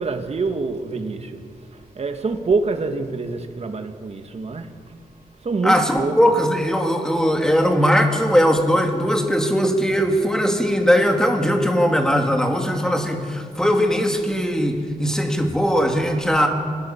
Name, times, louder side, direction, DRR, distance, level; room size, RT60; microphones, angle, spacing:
voice 1, 0.0-4.7 5.4-6.3 9.9-10.0, right 4 dB, 45° right, 1.8 m, -26 dB
voice 2, 5.6-16.5, equal, 5° left, 2.3 m, -19 dB
27.5 x 18.5 x 7.2 m
wide cardioid pair, 155°, 15 cm